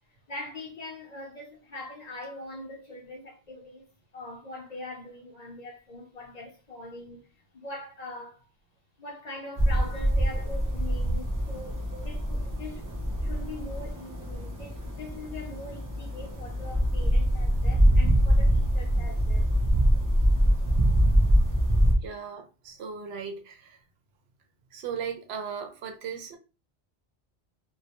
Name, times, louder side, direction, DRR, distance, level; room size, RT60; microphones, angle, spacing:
voice 1, 0.3-3.9 4.1-7.3 7.5-8.5 9.0-12.8 13.2-19.5, left 2 dB, 50° left, 0.5 m, -42 dB
sound 1, 9.6-21.9, equal, 30° right, 0.4 m, -24 dB
voice 2, 22.0-23.8 24.7-26.4, right 6 dB, 80° right, 0.8 m, -37 dB
2.2 x 2.1 x 2.8 m
omnidirectional pair, 1.1 m